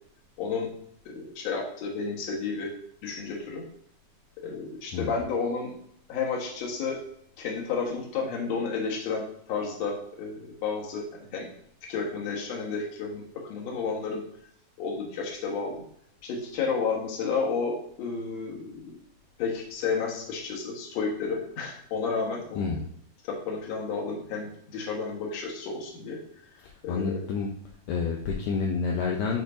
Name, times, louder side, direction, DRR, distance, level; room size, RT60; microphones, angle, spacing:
voice 1, 0.4-0.7 1.1-2.7 3.0-3.6 4.4-5.7 6.1-7.0 7.4-11.1 11.3-11.5 11.9-13.2 13.5-14.2 14.8-15.8 16.2-18.9 19.4-22.7 23.2-26.2 26.8-27.2, left 5 dB, 55° left, -1 dB, 2.1 m, -31 dB
voice 2, 22.6-22.9 26.9-27.5 27.9-29.4, left 5 dB, 80° left, -1 dB, 2.1 m, -28 dB
10.5 x 4.2 x 2.6 m, 0.68 s
omnidirectional pair, 4.4 m